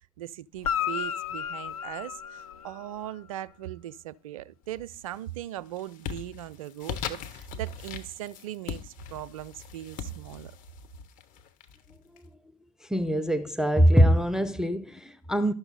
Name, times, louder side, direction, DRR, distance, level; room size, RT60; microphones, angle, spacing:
voice 1, 0.2-10.5, right 13 dB, 65° right, 0.4 m, -39 dB
Guitar, 0.6-3.2 7.0-7.1, left 8 dB, 75° left, 0.5 m, -33 dB
sound 1, 4.7-5.2 5.6-12.2, left 8 dB, 45° left, 1.1 m, -40 dB
voice 2, 12.9-15.5, equal, 5° right, 0.5 m, -23 dB
12.0 x 5.8 x 4.0 m
figure-of-eight pair, 75°, 19 cm